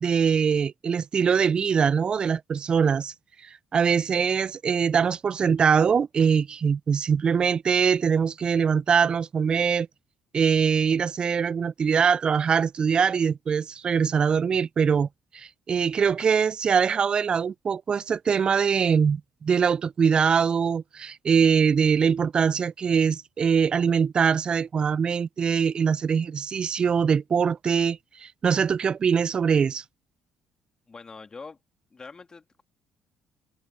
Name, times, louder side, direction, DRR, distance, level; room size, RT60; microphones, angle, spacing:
voice 1, 0.0-3.1 3.4-9.9 10.3-15.1 15.3-29.8, right 6 dB, 40° right, 0.3 m, -23 dB
voice 2, 30.9-31.6 31.9-32.6, left 4 dB, 30° left, 3.0 m, -44 dB
hypercardioid pair, 55°, 2 cm